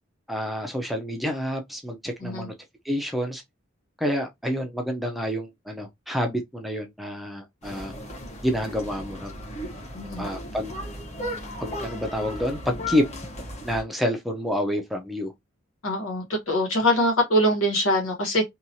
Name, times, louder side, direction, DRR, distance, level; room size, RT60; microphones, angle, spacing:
voice 1, 0.3-2.5 2.8-3.4 4.0-7.9 8.4-9.3 10.2-10.7 11.6-13.0 13.6-15.3, equal, ahead, 0.5 m, -28 dB
sound 1, 7.6-13.8, left 1 dB, 35° left, 0.9 m, -36 dB
voice 2, 9.9-10.3 15.8-18.4, equal, 80° left, 1.2 m, -23 dB
2.9 x 2.3 x 2.7 m
head